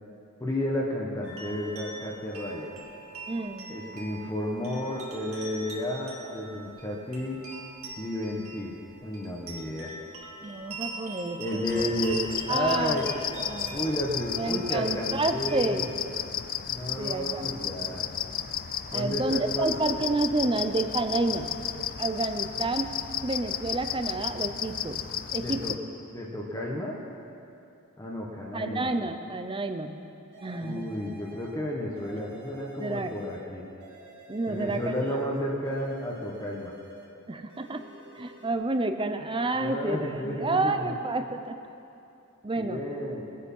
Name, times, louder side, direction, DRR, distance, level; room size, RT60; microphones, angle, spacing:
voice 1, 0.4-2.7 3.7-7.4 8.0-8.7 9.0-9.9 11.4-12.2 12.5-13.1 13.7-15.9 16.7-18.0 18.9-19.7 25.4-25.7 26.1-27.0 28.0-28.9 30.6-33.6 34.5-36.7 39.5-41.0 42.6-43.2, left 1 dB, 15° left, -3 dB, 1.2 m, -32 dB
sound 1, 1.2-15.6, right 3 dB, 75° right, 2.0 m, -43 dB
voice 2, 3.3-4.0 10.4-11.6 12.5-13.0 13.3-13.9 14.3-15.9 17.0-17.5 18.9-21.6 22.0-22.9 23.2-25.1 25.3-25.8 28.5-30.0 30.4-31.0 32.8-33.2 34.3-34.9 37.3-37.9 38.1-41.6 42.4-42.8, right 2 dB, 25° right, 8 dB, 0.7 m, -30 dB
sound 2, 11.6-25.8, left 9 dB, 40° left, 0.5 m, -33 dB
sound 3, 30.3-31.6 32.0-33.5 33.8-35.3 35.6-37.2 37.5-38.5, right 1 dB, 50° right, 2.5 m, -50 dB
21.5 x 8.4 x 5.5 m, 2.7 s
head